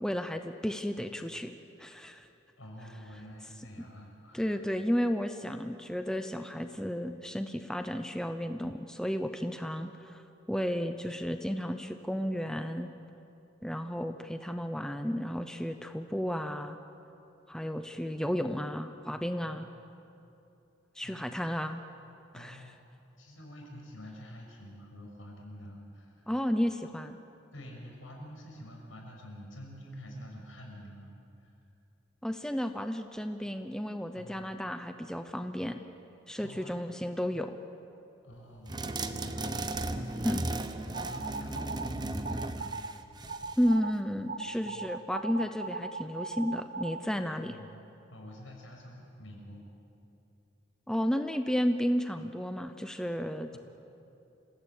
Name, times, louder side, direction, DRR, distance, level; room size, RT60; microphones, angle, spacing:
voice 1, 0.0-1.5 1.8-2.3 4.3-10.2 10.5-12.9 13.6-16.8 17.5-19.7 21.0-21.8 22.3-22.6 26.3-27.2 32.2-35.8 36.3-37.6 40.2-40.4 43.6-47.6 50.9-53.6, equal, 5° left, 7 dB, 0.8 m, -33 dB
voice 2, 2.6-4.6 19.4-20.0 21.0-21.4 22.3-22.9 23.2-26.3 27.5-31.1 31.4-31.5 34.1-34.5 36.4-36.8 38.2-42.8 44.6-44.8 47.4-47.8 48.1-49.6 53.5-53.6, equal, 80° left, 0 dB, 6.5 m, -48 dB
sound 1, 38.7-43.7, right 2 dB, 20° right, 0.9 m, -36 dB
sound 2, 40.9-41.9 42.2-42.9 43.3-43.9 44.3-47.0, right 4 dB, 45° right, 0.8 m, -38 dB
27.5 x 17.5 x 8.8 m, 2.8 s
head